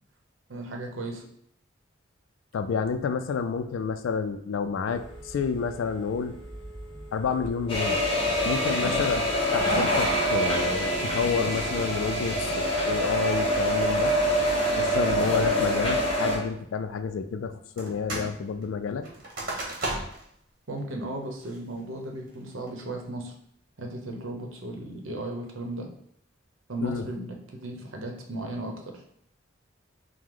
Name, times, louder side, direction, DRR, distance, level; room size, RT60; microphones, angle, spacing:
voice 1, 0.5-1.3 8.8-9.1 20.7-23.3 23.8-25.9 26.7-29.0, right 1 dB, 85° right, 2 dB, 0.8 m, -36 dB
voice 2, 2.5-6.4 7.1-8.0 8.4-9.2 9.5-14.1 14.8-19.1 26.8-27.0, left 6 dB, 80° left, 9 dB, 0.3 m, -29 dB
Telephone, 4.9-11.9, right 1 dB, ahead, 1.3 m, -44 dB
sound 1, 7.7-16.4, equal, 30° left, 1.0 m, -25 dB
sound 2, 17.8-18.3 18.6-20.3 20.8-20.9 21.4-21.8 22.3-22.7, right 2 dB, 45° right, 1.1 m, -34 dB
4.7 x 2.1 x 3.7 m, 0.70 s
head